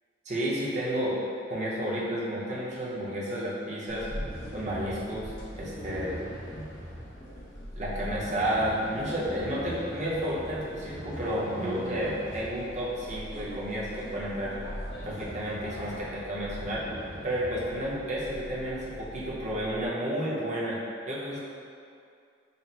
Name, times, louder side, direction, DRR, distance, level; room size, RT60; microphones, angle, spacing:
voice 1, 0.3-1.2 1.5-4.1 4.5-6.1 7.7-14.5 15.0-20.8 21.1-21.4, equal, 40° right, -7 dB, 0.7 m, -31 dB
sound 1, 3.9-19.9, equal, 45° left, 0.9 m, -41 dB
sound 2, 4.3-16.0, equal, 75° left, 0.8 m, -48 dB
4.2 x 2.0 x 4.0 m, 2.3 s
head